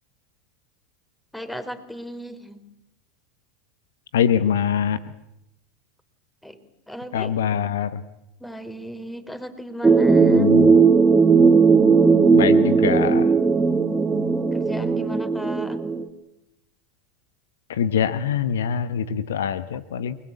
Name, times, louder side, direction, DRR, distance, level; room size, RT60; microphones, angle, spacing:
voice 1, 1.3-2.6 6.4-6.6 6.9-7.7 8.4-11.1 13.9-15.8, equal, 5° left, 11 dB, 4.0 m, -36 dB
voice 2, 4.1-5.1 7.1-8.0 10.3-10.7 12.3-13.3 17.7-20.2, left 8 dB, 75° left, 15 dB, 1.2 m, -24 dB
sound 1, 9.8-16.1, right 5 dB, 15° right, 2.7 m, -17 dB
29.0 x 21.0 x 8.5 m, 0.86 s
hypercardioid pair, 85°, 0 cm